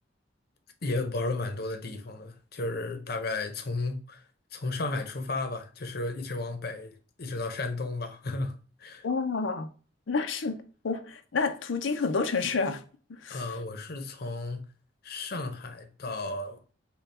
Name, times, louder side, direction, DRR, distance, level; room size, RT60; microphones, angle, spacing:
voice 1, 0.8-4.2 4.5-9.1 13.3-14.6 15.0-16.6, left 2 dB, 55° left, 0.8 m, -33 dB
voice 2, 9.0-9.7 10.1-12.8 13.1-13.6, left 4 dB, 90° left, 0.6 m, -29 dB
5.5 x 2.3 x 4.1 m
head